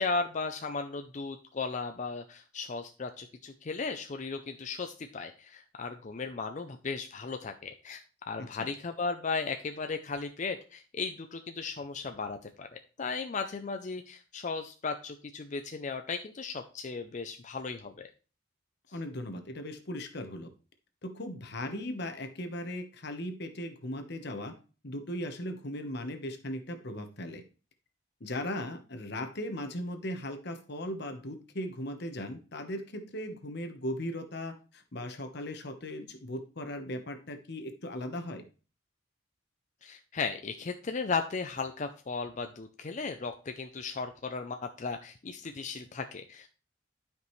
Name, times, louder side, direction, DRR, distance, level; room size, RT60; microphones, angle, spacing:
voice 1, 0.0-18.1 39.8-46.5, left 4 dB, 40° left, 6 dB, 0.5 m, -36 dB
voice 2, 18.9-20.5 21.0-24.5 24.8-27.4 28.2-38.4, left 1 dB, 55° left, 7 dB, 1.2 m, -38 dB
12.0 x 5.2 x 3.2 m, 0.36 s
head